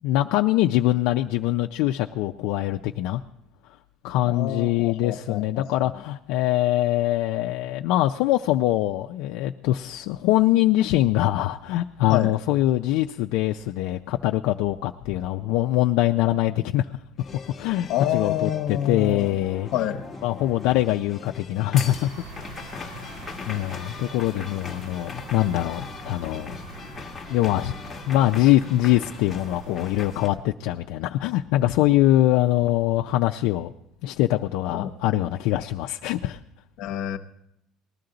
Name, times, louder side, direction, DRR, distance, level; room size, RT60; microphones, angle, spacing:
voice 1, 0.0-3.2 4.0-16.9 17.6-19.7 20.2-22.1 22.6-23.1 23.5-26.6 27.3-27.7 28.1-33.7 34.0-36.4, left 15 dB, 75° left, 3 dB, 0.4 m, -23 dB
voice 2, 4.2-5.9 12.1-12.3 17.9-19.4 19.7-20.0 34.7-34.9 36.8-37.2, left 10 dB, 60° left, 7 dB, 0.9 m, -28 dB
sound 1, 17.2-30.3, left 4 dB, 15° left, 1.0 m, -40 dB
sound 2, 21.8-30.4, right 2 dB, 60° right, 3.3 m, -43 dB
19.5 x 12.5 x 3.9 m, 0.81 s
cardioid pair, 165°, 0 cm